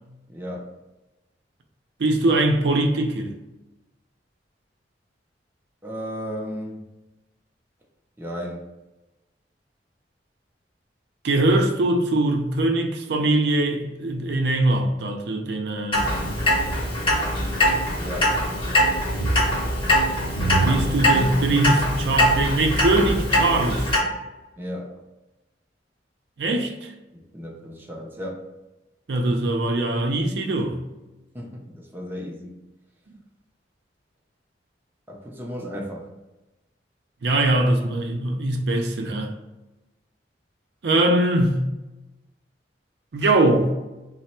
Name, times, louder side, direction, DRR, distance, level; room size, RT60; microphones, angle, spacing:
voice 1, 0.3-0.7 5.8-6.8 8.2-8.7 17.9-18.3 24.6-24.9 27.1-28.4 31.3-32.5 35.1-36.1, equal, 10° right, 0.4 m, -34 dB
voice 2, 2.0-3.3 11.2-16.1 20.6-23.9 26.4-26.9 29.1-30.8 37.2-39.3 40.8-41.7 43.1-43.7, right 2 dB, 70° right, 0.5 m, -22 dB
Clock, 15.9-24.0, equal, 30° left, 0.8 m, -22 dB
3.2 x 2.0 x 4.2 m
head